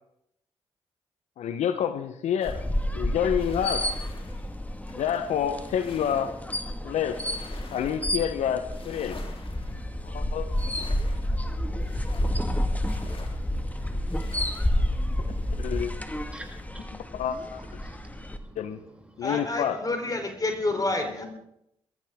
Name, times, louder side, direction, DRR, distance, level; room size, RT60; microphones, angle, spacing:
voice 1, 1.4-2.6 2.9-3.9 4.9-6.3 6.8-7.2 7.7-9.2 10.0-10.7 15.6-15.9 17.1-17.6 18.6-18.8 19.2-19.8, left 9 dB, 75° left, 11 dB, 1.0 m, -28 dB
sound 1, 2.4-16.7, left 3 dB, 50° left, 3.3 m, -50 dB
sound 2, 2.4-18.4, left 1 dB, 15° left, 1.8 m, -30 dB
voice 2, 16.3-19.6, right 1 dB, 10° right, 0 dB, 6.6 m, -49 dB
voice 3, 19.2-21.3, left 2 dB, 30° left, 4 dB, 3.8 m, -28 dB
22.5 x 14.0 x 3.7 m, 0.76 s
hypercardioid pair, 45°, 12 cm